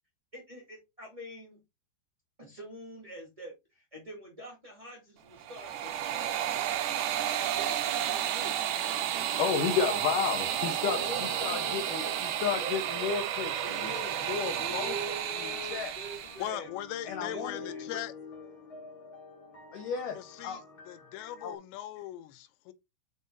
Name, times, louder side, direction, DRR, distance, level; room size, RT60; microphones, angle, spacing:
voice 1, 0.3-1.6 2.4-6.3 7.6-8.6 10.9-12.2 12.5-13.1 13.4-14.1 14.5-16.7 17.3-18.0, right 1 dB, 15° right, 1.0 m, -44 dB
sound 1, 5.3-16.5, right 10 dB, 90° right, 1.8 m, -32 dB
sound 2, 8.9-21.5, left 4 dB, 35° left, 2.4 m, -49 dB
voice 2, 9.4-15.9 17.1-17.6 17.9-18.0 19.7-20.2 20.4-20.6 21.4-21.6, left 7 dB, 70° left, 2.1 m, -33 dB
voice 3, 16.4-18.1 20.2-20.6 20.9-22.7, left 13 dB, 90° left, 3.0 m, -39 dB
6.1 x 5.5 x 3.9 m
omnidirectional pair, 4.9 m